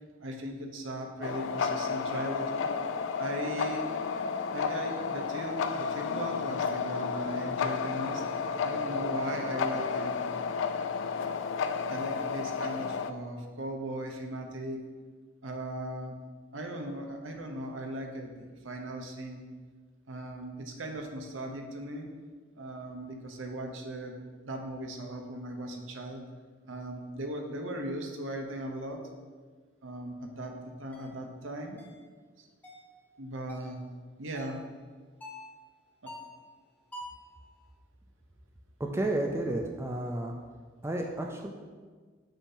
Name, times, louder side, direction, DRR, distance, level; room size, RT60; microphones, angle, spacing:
voice 1, 0.2-2.7 3.2-3.8 4.5-8.2 8.6-10.1 10.7-10.9 11.9-14.8 15.4-16.1 16.5-19.4 20.1-22.1 22.6-24.2 24.4-26.2 26.6-29.0 29.8-31.8 32.4-32.5 33.2-33.8 34.2-34.6 36.0-36.1, right 1 dB, 85° right, 3 dB, 0.8 m, -38 dB
sound 1, 1.2-13.1, left 5 dB, 70° left, 0.3 m, -32 dB
sound 2, 30.9-31.1 31.8-32.0 32.6-32.9 33.5-33.8 34.3-34.7 35.2-35.5 36.1-36.4 36.9-37.3, left 1 dB, 10° left, 0.8 m, -45 dB
voice 2, 38.8-40.3 40.8-41.5, right 1 dB, 15° right, 1 dB, 0.4 m, -31 dB
7.1 x 2.8 x 5.4 m, 1.5 s
head